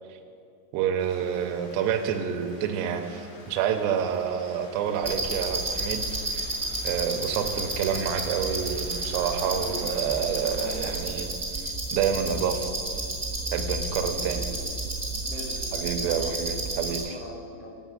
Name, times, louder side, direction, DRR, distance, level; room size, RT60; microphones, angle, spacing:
voice 1, 0.7-6.0 6.3-6.5 6.8-11.3 11.9-12.7 13.5-14.4 15.7-17.0, right 8 dB, 85° right, 7 dB, 2.7 m, -28 dB
Rain, 1.0-11.0, left 1 dB, 65° left, 4.3 m, -49 dB
sound 1, 5.0-17.0, right 2 dB, 25° right, 0.8 m, -31 dB
voice 2, 9.5-9.9 10.2-10.9 13.9-14.6 15.3-17.8, left 1 dB, 80° left, -4 dB, 1.3 m, -42 dB
8.2 x 6.9 x 7.7 m, 2.4 s
omnidirectional pair, 5.0 m